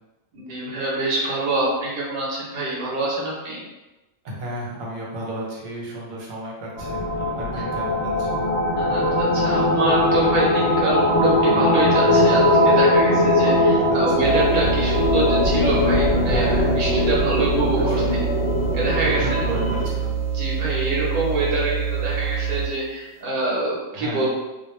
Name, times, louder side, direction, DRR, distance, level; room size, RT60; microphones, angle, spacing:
voice 1, 0.3-3.6 7.5-7.6 8.8-18.0 18.7-19.4 20.3-24.3, right 2 dB, 45° right, -5 dB, 0.8 m, -25 dB
voice 2, 4.2-8.4 12.1-12.4 13.9-14.3 16.3-16.8 17.8-18.2 19.0-20.1 23.9-24.3, right 1 dB, 80° right, -3 dB, 1.1 m, -32 dB
sound 1, 6.8-19.9, left 1 dB, 65° left, 0.6 m, -20 dB
sound 2, 14.2-22.9, right 8 dB, 65° right, 0.4 m, -26 dB
2.2 x 2.1 x 3.1 m, 1.1 s
omnidirectional pair, 1.4 m